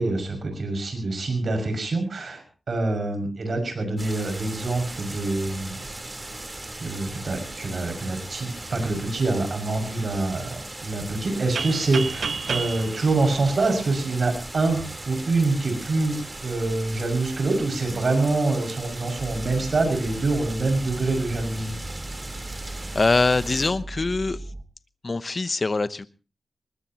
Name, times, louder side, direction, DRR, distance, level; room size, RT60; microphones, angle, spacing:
voice 1, 0.0-5.8 6.7-21.8, right 3 dB, 65° right, 5 dB, 6.3 m, -25 dB
sound 1, 4.0-23.7, right 2 dB, 30° right, 3.8 m, -38 dB
sound 2, 11.6-14.3, right 5 dB, 90° right, 1.3 m, -31 dB
sound 3, 19.2-24.6, right 2 dB, 50° right, 1.8 m, -37 dB
voice 2, 22.6-24.4 25.0-26.1, left 3 dB, 45° left, 14 dB, 0.9 m, -24 dB
20.5 x 20.0 x 3.0 m, 0.33 s
cardioid pair, 65°, 0 cm